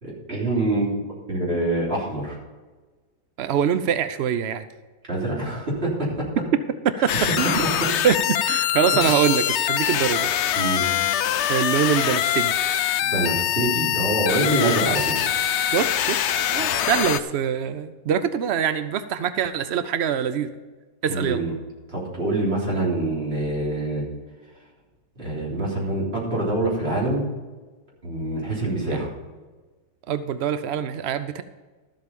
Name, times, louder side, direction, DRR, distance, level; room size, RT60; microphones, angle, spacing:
voice 1, 0.0-0.9 1.3-2.4 5.1-6.2 7.6-7.9 10.6-10.8 13.0-15.1 21.1-21.5 21.9-24.0 25.2-27.2 28.0-29.1, right 2 dB, 35° right, -4 dB, 3.6 m, -25 dB
voice 2, 3.4-4.7 7.0-7.6 8.0-10.3 11.5-12.6 15.7-16.2 16.5-20.5 21.0-21.4 28.9-29.1 30.1-31.4, right 8 dB, 80° right, 11 dB, 0.5 m, -24 dB
sound 1, 7.1-17.2, left 11 dB, 90° left, 0.6 m, -23 dB
13.0 x 7.8 x 5.3 m, 1.3 s
omnidirectional pair, 1.8 m